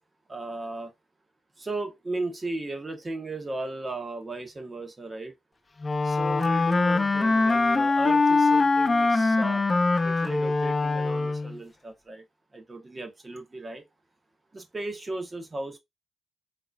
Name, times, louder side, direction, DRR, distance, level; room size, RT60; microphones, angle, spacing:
voice 1, 0.3-0.9 1.6-5.3 6.0-9.6 10.0-12.2 12.5-13.8 14.5-15.8, right 2 dB, 35° right, 1.1 m, -36 dB
Wind instrument woodwind instrument, 5.8-11.6, left 3 dB, 35° left, 0.4 m, -23 dB
3.7 x 2.6 x 2.4 m
supercardioid pair, 50°, 0 cm